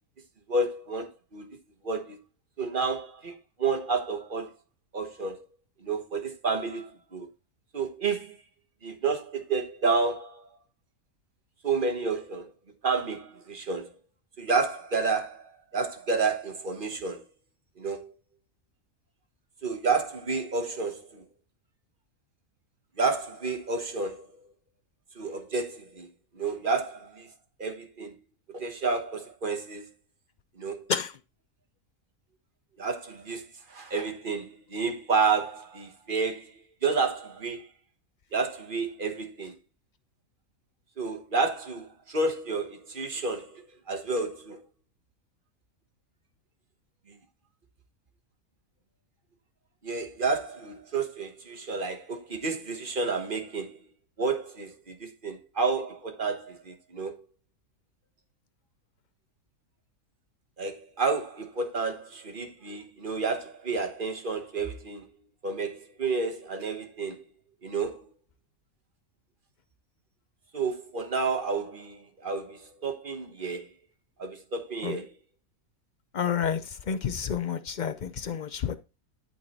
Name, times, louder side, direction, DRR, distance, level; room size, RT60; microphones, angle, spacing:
voice 1, 0.5-1.6 1.8-2.2 2.6-4.5 4.9-5.4 5.8-7.3 7.7-8.4 8.8-10.5 11.6-12.4 12.8-13.9 14.4-17.2 17.8-18.1 19.6-21.2 23.0-24.3 25.1-26.1 26.3-27.3 27.6-28.1 28.5-29.9 30.6-30.9 32.8-37.7 38.3-39.5 41.0-43.5 43.9-44.6 49.8-53.8 54.2-57.2 60.6-65.0 65.4-67.3 67.6-68.0 70.5-73.7 74.2-75.1, right 4 dB, 40° right, 1.4 m, -30 dB
voice 2, 76.1-76.6 76.9-78.8, left 7 dB, 65° left, 0.4 m, -29 dB
12.0 x 4.4 x 4.3 m
omnidirectional pair, 1.5 m